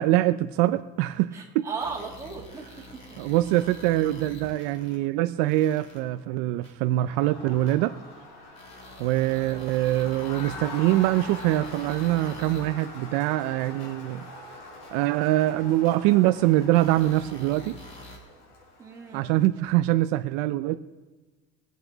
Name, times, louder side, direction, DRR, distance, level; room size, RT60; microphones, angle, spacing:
voice 1, 0.0-1.7 3.2-8.0 9.0-14.2 14.9-17.8 19.1-20.8, right 15 dB, 70° right, 10 dB, 0.5 m, -24 dB
voice 2, 1.3-3.2 9.5-10.1 18.8-19.3, right 5 dB, 15° right, -1 dB, 2.3 m, -38 dB
sound 1, 1.8-5.0 5.5-6.0 6.6-6.7 7.7-7.8 8.6-12.9 13.8-13.9 14.8-14.9 15.9-16.0 16.7-18.2, left 1 dB, 30° left, 2.6 m, -46 dB
Crowd, 6.9-19.4, left 2 dB, 75° left, 5.3 m, -43 dB
22.0 x 8.3 x 4.0 m, 1.2 s
cardioid pair, 160°, 20 cm